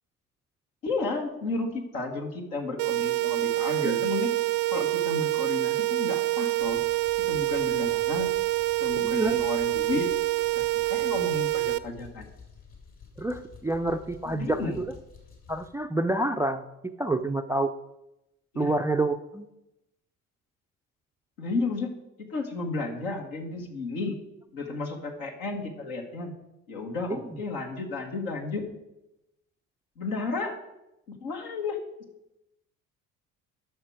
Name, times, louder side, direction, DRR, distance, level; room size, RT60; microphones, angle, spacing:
voice 1, 0.8-4.3 4.7-6.8 7.3-8.3 8.8-10.1 10.5-12.3 14.3-14.8 18.5-18.7 21.4-21.9 22.3-24.2 24.5-26.3 26.7-28.8 30.0-30.6 31.2-31.8, left 3 dB, 75° left, 2 dB, 1.6 m, -32 dB
sound 1, 2.8-11.8, right 18 dB, 55° right, 0.5 m, -26 dB
sound 2, 6.6-15.7, left 5 dB, 55° left, 2.9 m, -51 dB
voice 2, 8.9-9.5 13.2-14.9 15.5-16.6 17.0-17.7 18.6-19.5 27.1-27.2, right 2 dB, 10° right, 11 dB, 0.3 m, -28 dB
11.5 x 6.1 x 4.7 m, 0.91 s
hypercardioid pair, 55°, 42 cm